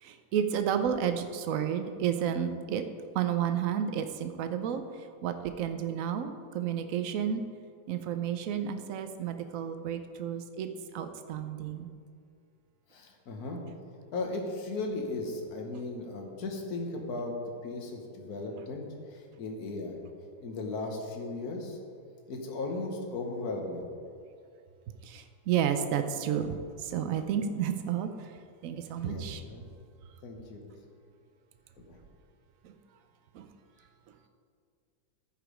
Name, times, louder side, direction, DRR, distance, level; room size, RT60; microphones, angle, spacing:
voice 1, 0.0-2.8 3.1-7.4 7.9-11.9 25.0-28.3 28.6-29.4 32.6-32.8 33.3-33.5, right 8 dB, 75° right, 8 dB, 0.7 m, -31 dB
voice 2, 12.9-13.6 14.1-17.3 17.6-20.0 20.4-21.8 22.3-23.9 29.0-29.7 30.2-30.7 31.8-32.0, left 2 dB, 55° left, 2 dB, 1.6 m, -36 dB
14.5 x 5.0 x 5.0 m, 2.3 s
omnidirectional pair, 2.1 m